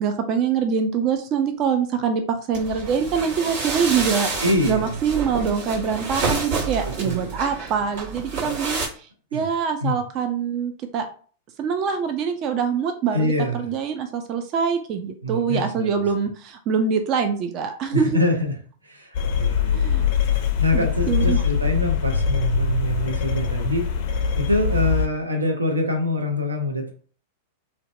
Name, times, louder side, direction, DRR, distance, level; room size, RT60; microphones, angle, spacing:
voice 1, 0.0-11.1 11.6-18.2 19.7-20.1 20.7-21.4, right 6 dB, 40° right, 6 dB, 0.3 m, -24 dB
sound 1, 2.5-8.9, right 4 dB, 65° right, 1.3 m, -29 dB
voice 2, 4.4-5.0 7.0-7.4 9.3-9.4 9.8-10.0 13.1-13.7 15.2-16.1 17.9-18.6 18.8-20.1 20.6-23.9 24.4-26.9, left 1 dB, 85° right, 3 dB, 0.5 m, -25 dB
sound 2, 19.1-25.1, left 6 dB, 55° left, 0.4 m, -22 dB
2.5 x 2.1 x 2.4 m, 0.43 s
figure-of-eight pair, 95°, 0 cm